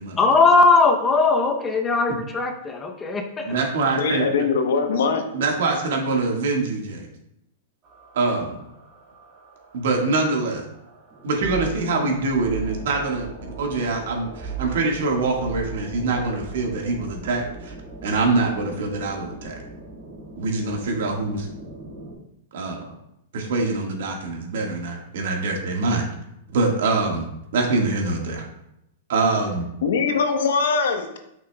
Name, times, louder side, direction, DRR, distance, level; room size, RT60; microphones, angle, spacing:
voice 1, 0.2-3.5, left 3 dB, 15° left, 4 dB, 0.7 m, -19 dB
voice 2, 3.4-4.2 5.3-7.1 8.1-8.6 9.7-10.6 11.2-13.3 13.6-17.7 18.0-19.6 20.4-21.5 22.5-22.9 23.3-26.0 26.5-27.2 27.5-28.5 29.1-29.6, right 3 dB, 70° right, 1 dB, 1.5 m, -24 dB
voice 3, 4.0-5.2 29.8-31.2, left 5 dB, 75° left, 6 dB, 0.9 m, -22 dB
sound 1, 7.8-22.1, right 4 dB, 30° right, 1.7 m, -39 dB
8.1 x 5.9 x 2.2 m, 0.81 s
supercardioid pair, 155°, 0 cm